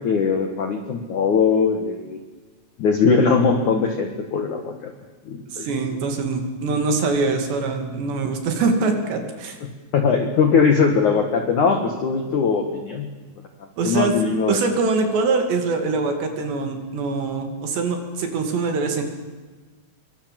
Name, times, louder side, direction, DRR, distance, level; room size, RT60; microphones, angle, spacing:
voice 1, 0.0-2.2 2.8-4.9 5.3-5.7 9.9-13.1 13.8-14.6 15.2-15.3, left 5 dB, 65° left, 5 dB, 2.0 m, -20 dB
voice 2, 5.5-9.6 13.8-14.1 14.5-19.0, right 4 dB, 60° right, 5 dB, 4.5 m, -23 dB
27.0 x 23.0 x 7.7 m, 1.3 s
omnidirectional pair, 6.0 m